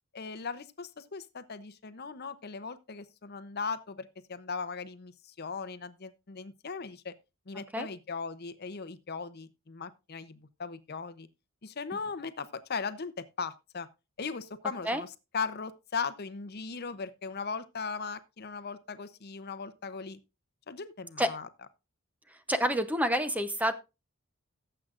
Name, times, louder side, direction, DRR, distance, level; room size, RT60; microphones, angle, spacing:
voice 1, 0.1-7.1 7.5-11.3 11.6-13.9 14.2-15.1 15.3-20.2 20.7-21.5, left 5 dB, 50° left, 0.7 m, -38 dB
voice 2, 22.5-23.7, equal, 5° right, 0.7 m, -28 dB
18.0 x 7.8 x 2.5 m
head